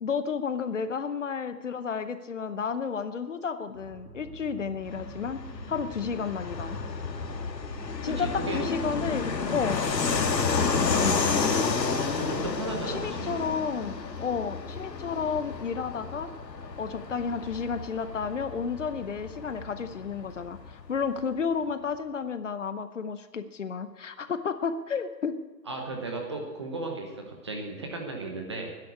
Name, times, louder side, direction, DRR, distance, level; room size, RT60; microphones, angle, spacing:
voice 1, 0.0-6.8 8.0-9.9 10.6-11.2 12.9-16.3 16.8-25.4, left 6 dB, 50° left, 11 dB, 0.8 m, -32 dB
sound 1, 3.7-9.3, right 5 dB, 85° right, 4.0 m, -48 dB
Fixed-wing aircraft airplane, 4.9-21.0, left 4 dB, 75° left, 2.1 m, -31 dB
voice 2, 8.0-8.8 12.1-13.5 25.7-28.7, right 3 dB, 15° right, 2 dB, 0.9 m, -35 dB
12.0 x 10.5 x 8.3 m, 1.2 s
hypercardioid pair, 170°, 50 cm